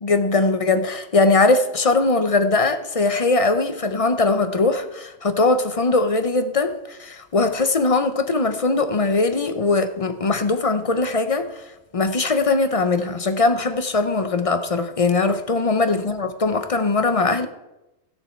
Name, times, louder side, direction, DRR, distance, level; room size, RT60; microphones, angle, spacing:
voice 1, 0.0-11.5 11.9-17.5, left 3 dB, 35° left, 0.7 m, -20 dB
14.5 x 9.7 x 4.4 m
omnidirectional pair, 1.2 m